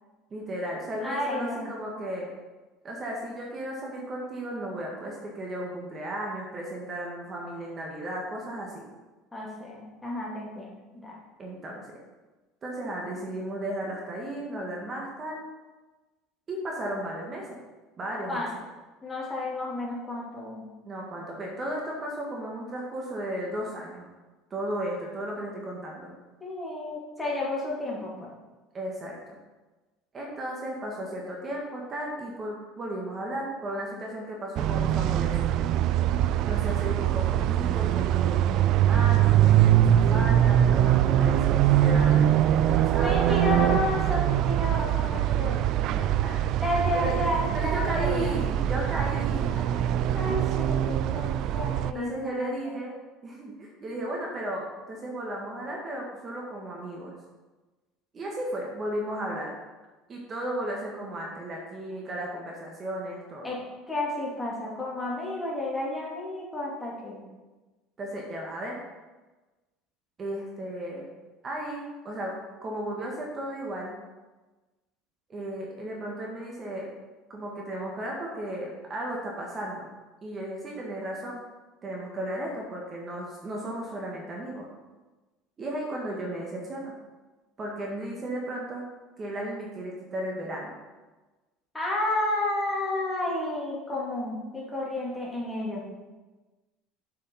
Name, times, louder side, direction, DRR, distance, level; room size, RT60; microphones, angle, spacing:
voice 1, 0.3-2.3 2.8-8.9 11.4-12.0 12.6-15.4 16.5-17.6 18.0-18.4 20.8-24.1 24.5-26.1 28.7-29.4 30.1-35.7 36.4-43.6 45.9-46.4 46.9-47.1 47.5-49.6 51.9-57.1 58.1-59.5 60.1-63.5 68.0-68.8 70.2-71.1 71.4-74.0 75.3-76.9 77.3-79.9 80.2-81.4 81.8-84.7 85.6-86.9 87.6-88.8 89.2-90.8, right 1 dB, 30° right, -2 dB, 1.9 m, -35 dB
voice 2, 1.0-1.7 9.3-10.7 10.9-11.2 18.3-18.5 19.0-20.7 26.4-28.3 43.0-45.9 46.5-48.4 49.3-49.8 50.1-51.3 51.5-52.8 63.4-63.6 63.9-67.2 91.7-95.8, left 2 dB, 10° left, -5 dB, 2.9 m, -31 dB
sound 1, 34.6-51.9, right 11 dB, 60° right, 0.3 m, -23 dB
7.6 x 5.5 x 5.5 m, 1.2 s
supercardioid pair, 105°, 0 cm